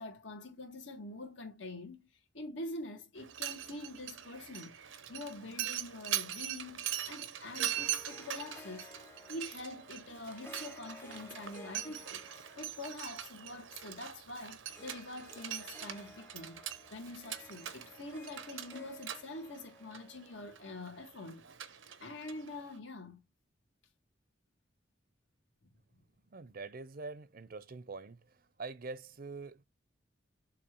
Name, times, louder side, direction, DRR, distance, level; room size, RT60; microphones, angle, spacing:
voice 1, 0.0-2.1 2.3-4.8 5.1-8.9 9.3-21.4 22.0-23.2, left 2 dB, 75° left, 2.0 m, -45 dB
Mechanisms, 3.2-22.8, right 11 dB, 85° right, 0.9 m, -42 dB
Harp, 7.6-21.2, left 2 dB, 15° left, 0.8 m, -56 dB
voice 2, 26.3-28.2 28.6-29.6, right 3 dB, 50° right, 0.6 m, -44 dB
7.1 x 2.8 x 4.6 m
head